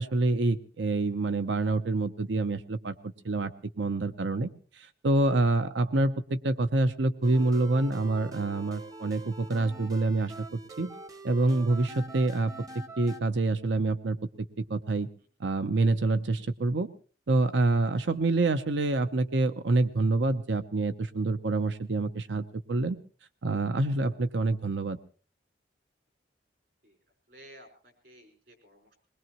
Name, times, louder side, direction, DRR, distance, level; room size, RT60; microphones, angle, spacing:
voice 1, 0.0-2.9 3.2-3.5 3.8-4.5 4.7-10.9 11.2-12.5 13.0-14.2 14.6-15.1 15.4-16.9 17.3-23.0 23.4-25.0, right 2 dB, 85° right, 11 dB, 0.8 m, -27 dB
sound 1, 7.2-13.2, right 2 dB, 20° right, 0.7 m, -45 dB
voice 2, 27.3-28.9, equal, 60° right, 5 dB, 4.9 m, -54 dB
21.5 x 20.5 x 3.0 m, 0.40 s
head